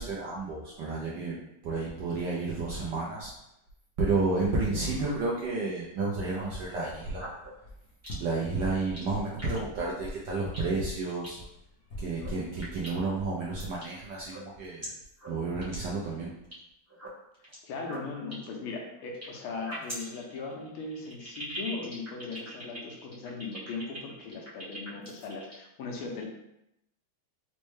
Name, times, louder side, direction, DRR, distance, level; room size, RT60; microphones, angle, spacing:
voice 1, 0.0-1.4 1.6-3.3 4.0-7.3 8.2-11.4 12.0-14.9 15.3-16.3, right 3 dB, 75° right, -5 dB, 1.0 m, -31 dB
sound 1, 6.3-14.7, left 1 dB, 60° left, 0.8 m, -45 dB
sound 2, 6.8-7.5 8.0-8.4 8.8-9.0 9.4-9.6 9.9-10.0 10.5-10.7 11.1-11.3 12.0-12.3 12.6-13.2 13.6-13.9 14.2-14.8 15.2-15.3 15.6-15.7 16.0-16.5 16.9-17.5 17.8-19.2 19.6-25.6, right 1 dB, 20° right, 0.4 m, -43 dB
voice 2, 17.6-26.3, left 3 dB, 80° left, 0 dB, 1.5 m, -38 dB
4.3 x 2.1 x 3.1 m, 0.83 s
omnidirectional pair, 2.4 m